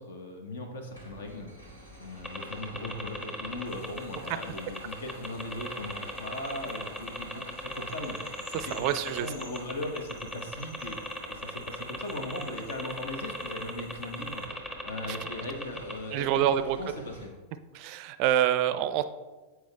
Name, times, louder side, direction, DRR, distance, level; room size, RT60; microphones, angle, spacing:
voice 1, 0.0-1.5 2.0-8.1 8.5-14.4 14.8-17.3, left 1 dB, 65° left, 4 dB, 1.1 m, -39 dB
sound 1, 0.9-17.3, equal, 80° left, 2.1 m, -50 dB
sound 2, 2.2-16.0, equal, 15° left, 1.0 m, -37 dB
sound 3, 3.6-14.5, left 2 dB, 45° left, 1.7 m, -57 dB
voice 2, 8.5-9.3 16.1-16.8 17.7-19.0, right 11 dB, 45° right, 12 dB, 0.4 m, -26 dB
8.1 x 4.7 x 3.4 m, 1.2 s
figure-of-eight pair, 90°, 0 cm